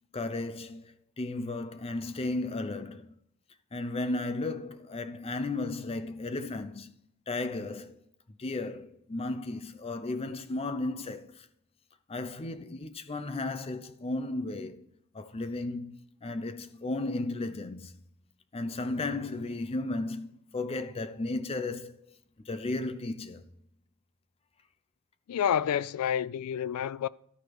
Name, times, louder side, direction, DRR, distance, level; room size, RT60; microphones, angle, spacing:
voice 1, 0.1-3.1 3.7-6.9 7.3-8.0 8.3-11.5 12.1-14.8 15.1-18.0 18.5-21.9 22.4-23.4, left 2 dB, 25° left, 0.5 m, -34 dB
voice 2, 25.3-27.1, left 9 dB, 90° left, 0.3 m, -29 dB
12.0 x 4.6 x 4.8 m
head